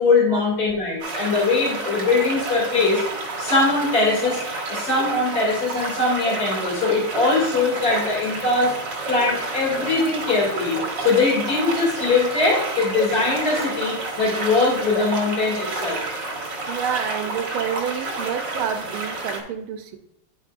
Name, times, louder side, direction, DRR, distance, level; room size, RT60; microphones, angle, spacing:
voice 1, 0.0-4.4 4.7-8.7 9.1-16.0, left 3 dB, 30° left, -4 dB, 2.6 m, -21 dB
sound 1, 1.0-19.4, right 2 dB, 60° right, 2.2 m, -30 dB
voice 2, 16.7-20.0, right 8 dB, 80° right, 6 dB, 1.6 m, -29 dB
10.0 x 5.1 x 2.5 m, 0.75 s
omnidirectional pair, 2.3 m